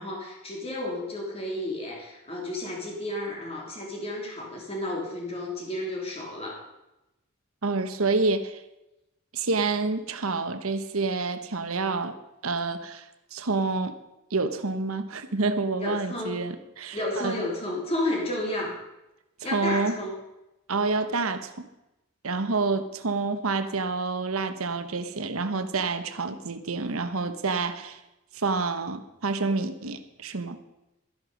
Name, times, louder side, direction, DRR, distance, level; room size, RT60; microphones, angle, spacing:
voice 1, 0.0-6.6 15.8-16.4 16.9-18.7 19.4-20.2, left 1 dB, 30° left, -1 dB, 3.4 m, -32 dB
voice 2, 7.6-8.6 9.3-12.1 12.4-13.9 14.3-17.4 19.4-20.0 20.7-21.7 22.2-28.0 28.3-30.6, right 3 dB, 80° right, 9 dB, 1.1 m, -28 dB
13.0 x 11.0 x 5.2 m, 0.93 s
head